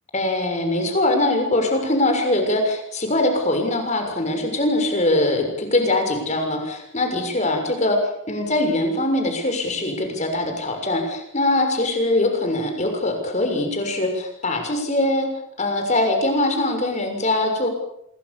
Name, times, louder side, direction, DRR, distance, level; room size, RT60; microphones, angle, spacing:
voice 1, 0.1-8.0 8.3-15.3 15.6-17.7, left 1 dB, 35° left, 4 dB, 6.6 m, -22 dB
27.5 x 23.0 x 7.2 m, 0.74 s
head